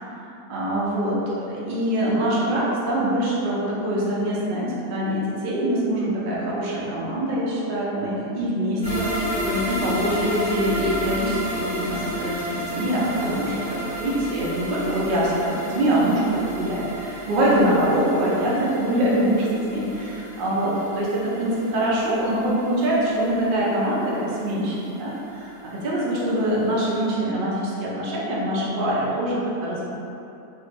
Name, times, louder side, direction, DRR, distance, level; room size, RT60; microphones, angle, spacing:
voice 1, 0.5-13.5 13.9-25.5 25.8-29.8, right 1 dB, 75° right, -7 dB, 0.4 m, -24 dB
sound 1, 8.8-25.9 26.2-26.3 26.7-26.8, equal, 35° left, 1.5 m, -32 dB
2.9 x 2.8 x 2.5 m, 2.8 s
omnidirectional pair, 1.7 m